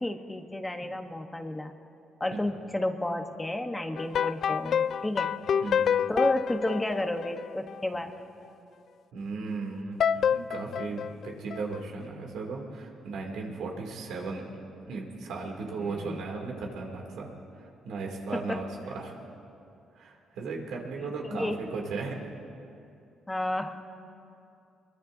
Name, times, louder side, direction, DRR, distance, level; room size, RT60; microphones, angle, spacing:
voice 1, 0.0-1.7 2.2-5.3 6.1-8.1 15.8-16.2 18.3-18.6 21.0-21.6 23.3-23.9, left 1 dB, 15° left, 6 dB, 1.0 m, -31 dB
sound 1, 4.0-7.8 10.0-11.8, left 8 dB, 60° left, 0.3 m, -28 dB
voice 2, 9.1-10.0 10.3-14.4 14.9-17.3 17.6-19.3 19.9-22.4, right 4 dB, 85° right, 0 dB, 2.6 m, -36 dB
23.5 x 22.0 x 2.7 m, 2.7 s
cardioid pair, 90°, 0 cm